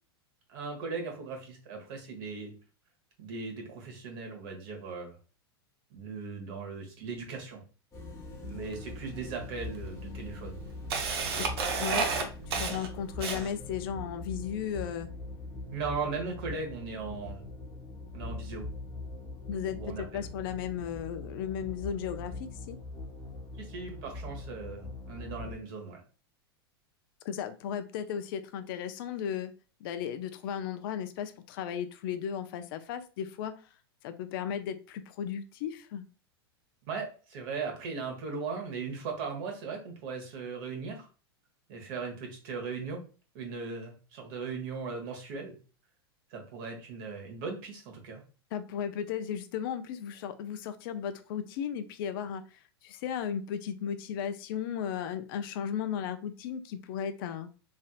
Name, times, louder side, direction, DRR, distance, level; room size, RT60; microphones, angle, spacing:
voice 1, 0.5-2.5 3.2-5.2 5.9-7.6 8.5-10.6 11.3-11.5 15.7-17.4 18.1-18.7 19.7-20.2 23.6-26.0 36.8-41.1 41.7-43.0 43.3-45.6 46.3-48.2, right 4 dB, 55° right, 2 dB, 1.2 m, -38 dB
sound 1, 7.9-25.6, left 2 dB, 25° left, 1.0 m, -42 dB
Camera, 8.7-8.8 9.7-9.8 10.2-13.7, right 5 dB, 75° right, 0.7 m, -31 dB
voice 2, 11.8-15.1 19.5-22.8 27.2-29.5 29.8-33.5 34.0-36.1 48.5-57.5, left 8 dB, 60° left, 10 dB, 0.4 m, -35 dB
3.2 x 2.7 x 2.4 m, 0.36 s
hypercardioid pair, 110°, 13 cm